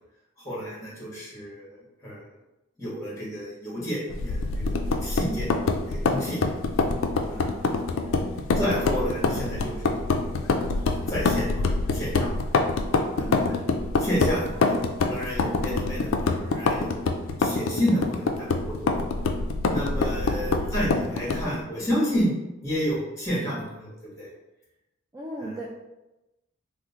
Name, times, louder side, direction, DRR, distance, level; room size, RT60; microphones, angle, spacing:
voice 1, 0.4-2.3 2.8-5.5 5.9-6.4 7.3-7.6 8.5-10.5 11.1-12.3 13.1-13.6 14.0-17.1 17.4-19.0 19.7-22.3 22.6-24.3 25.4-25.7, equal, 15° left, -6 dB, 1.1 m, -30 dB
sound 1, 4.1-21.6, left 3 dB, 70° left, 0.3 m, -25 dB
voice 2, 8.0-8.4 20.1-20.6 21.1-21.2 25.1-25.7, right 1 dB, 15° right, -4 dB, 0.3 m, -38 dB
3.0 x 2.0 x 3.7 m, 0.97 s
head